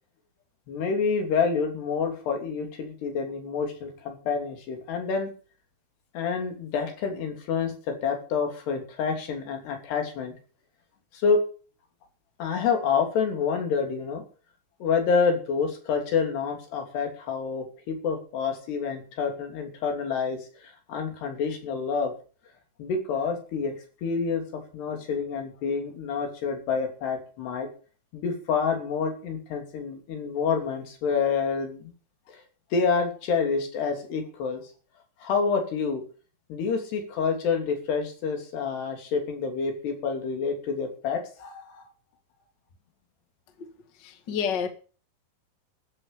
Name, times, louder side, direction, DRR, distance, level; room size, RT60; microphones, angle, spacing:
voice 1, 0.7-5.3 6.2-10.3 11.2-11.4 12.4-14.2 14.8-22.1 22.8-23.8 24.0-27.7 28.1-31.9 32.3-32.4 32.7-34.6 35.2-36.0 36.5-41.9, left 5 dB, 70° left, 5.0 m, -28 dB
voice 2, 44.0-44.7, left 7 dB, 45° left, 1.5 m, -28 dB
13.5 x 9.0 x 7.2 m
omnidirectional pair, 5.0 m